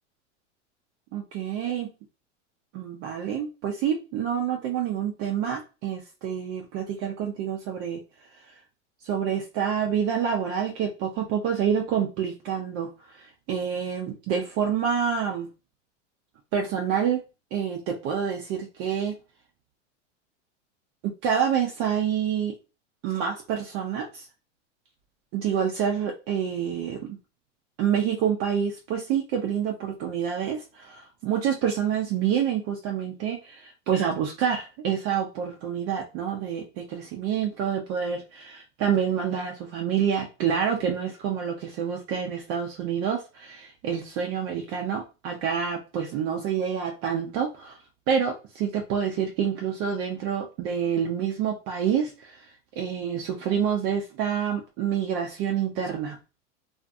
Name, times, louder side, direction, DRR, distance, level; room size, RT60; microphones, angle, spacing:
voice 1, 1.1-1.9 2.7-8.0 8.3-8.4 9.0-15.5 16.5-17.2 17.5-19.1 21.2-22.5 23.0-24.3 25.3-27.0 27.8-47.8 48.1-52.5 52.8-56.2, right 8 dB, 40° right, 2 dB, 0.5 m, -27 dB
2.5 x 2.3 x 2.5 m, 0.30 s
hypercardioid pair, 110°, 37 cm